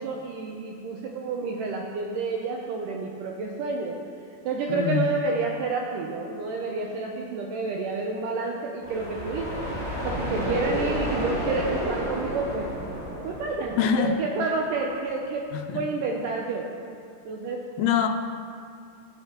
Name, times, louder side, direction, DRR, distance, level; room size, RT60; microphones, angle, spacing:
voice 1, 0.0-4.0 4.4-9.7 10.0-12.7 13.2-15.5 15.7-16.7 17.3-17.7, right 3 dB, 80° right, 0 dB, 1.9 m, -29 dB
voice 2, 4.7-5.1 13.8-14.2 15.5-15.8 17.8-18.1, left 8 dB, 90° left, 4 dB, 2.5 m, -24 dB
sound 1, 8.8-14.6, equal, 20° right, 2.2 m, -31 dB
13.0 x 7.7 x 2.9 m, 2.3 s
omnidirectional pair, 4.3 m